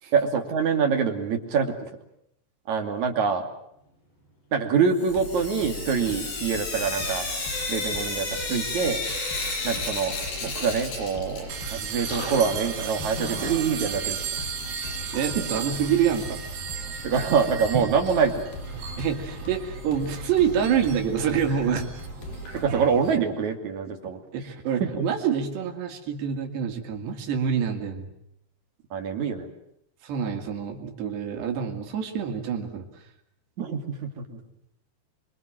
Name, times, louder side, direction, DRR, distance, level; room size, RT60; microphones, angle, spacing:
voice 1, 0.1-1.9 2.7-3.5 4.5-7.3 7.7-9.0 9.6-10.1 10.4-14.4 15.4-15.5 17.0-18.5 22.6-24.2 24.9-25.1 28.9-29.5 33.6-34.4, right 6 dB, 50° right, 5 dB, 3.6 m, -25 dB
Sink (filling or washing) / Drip, 5.0-11.7 12.0-13.9 15.1-15.2 15.5-15.6 15.8-15.9 18.8-18.9 19.4-19.5 20.1-20.2 20.8-20.9 21.5-21.6 22.5-22.6, left 2 dB, 90° left, 9.2 m, -33 dB
sound 1, 5.1-22.7, left 1 dB, 55° left, 4.6 m, -40 dB
sound 2, 11.5-23.2, right 7 dB, 75° right, 4.2 m, -35 dB
voice 2, 15.1-16.4 19.0-21.9 24.3-28.1 30.0-32.9, right 7 dB, 90° right, 3 dB, 4.7 m, -26 dB
27.0 x 24.0 x 7.7 m, 0.76 s
omnidirectional pair, 4.7 m